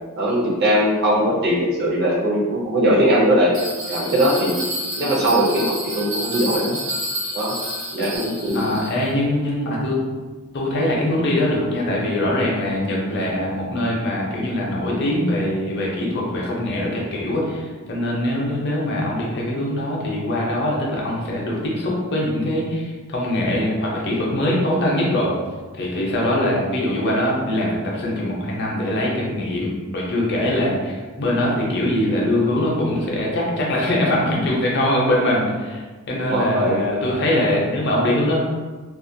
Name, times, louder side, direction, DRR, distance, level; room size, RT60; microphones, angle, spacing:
voice 1, 0.2-3.5 3.9-4.6 5.0-6.8 7.3-7.6 7.9-8.7 36.3-36.8, equal, 50° right, -4 dB, 0.5 m, -20 dB
Bell, 3.5-9.1, equal, 65° right, 0.9 m, -30 dB
voice 2, 8.5-10.0 10.5-25.3 25.7-35.8 36.1-38.4, left 1 dB, 50° left, -3 dB, 0.6 m, -22 dB
2.4 x 2.1 x 2.5 m, 1.3 s
head